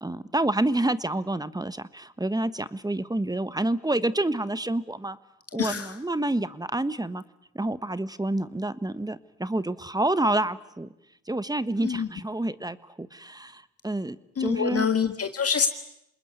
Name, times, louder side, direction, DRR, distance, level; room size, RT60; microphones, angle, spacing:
voice 1, 0.0-5.2 5.5-7.2 7.5-10.9 11.3-14.9, right 1 dB, 10° right, 14 dB, 1.4 m, -28 dB
voice 2, 5.6-5.9 11.8-12.1 14.4-15.7, left 7 dB, 45° left, 7 dB, 1.8 m, -26 dB
27.5 x 20.5 x 9.6 m, 0.81 s
supercardioid pair, 65°, 33 cm